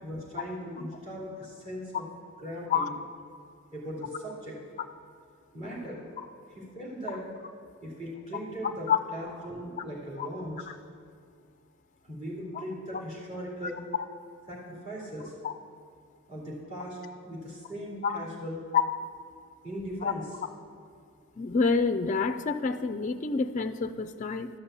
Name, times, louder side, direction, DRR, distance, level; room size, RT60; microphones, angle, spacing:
voice 1, 0.0-2.1 2.4-2.9 3.7-4.6 5.5-6.2 6.5-7.2 7.8-10.7 12.0-13.8 14.5-15.3 16.3-17.0 17.2-18.6 19.6-20.3, equal, 30° right, -6 dB, 3.0 m, -39 dB
voice 2, 21.4-24.5, left 5 dB, 35° left, 8 dB, 0.4 m, -27 dB
12.5 x 5.5 x 8.1 m, 2.3 s
head